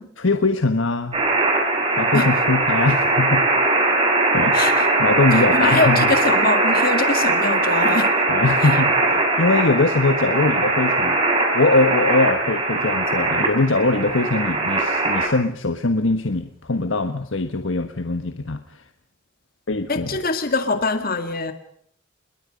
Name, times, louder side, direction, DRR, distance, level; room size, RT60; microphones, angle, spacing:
voice 1, 0.2-1.2 2.0-3.4 4.3-4.6 5.0-6.1 8.3-11.2 11.5-18.6 19.7-20.2, left 3 dB, 80° left, 8 dB, 1.4 m, -21 dB
sound 1, 1.1-15.3, right 2 dB, 30° right, 6.3 m, -20 dB
voice 2, 4.5-4.9 5.3-8.1 8.6-8.7 19.9-21.5, left 3 dB, 50° left, 8 dB, 2.0 m, -23 dB
27.5 x 22.0 x 5.3 m, 0.65 s
head